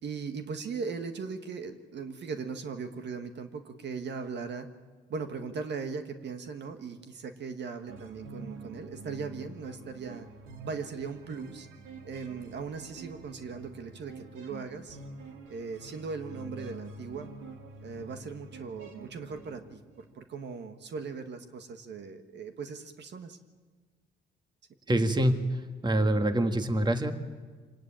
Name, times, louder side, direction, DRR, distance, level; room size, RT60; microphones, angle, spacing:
voice 1, 0.0-4.7 5.1-10.3 10.6-11.7 12.0-15.0 15.5-17.3 17.8-23.4, right 5 dB, 60° right, 7 dB, 1.7 m, -39 dB
sound 1, 7.9-20.2, right 3 dB, 90° right, 2.5 m, -47 dB
voice 2, 24.9-27.1, right 1 dB, 20° right, 7 dB, 1.8 m, -26 dB
25.5 x 19.0 x 9.0 m, 1.4 s
cardioid pair, 90°, 20 cm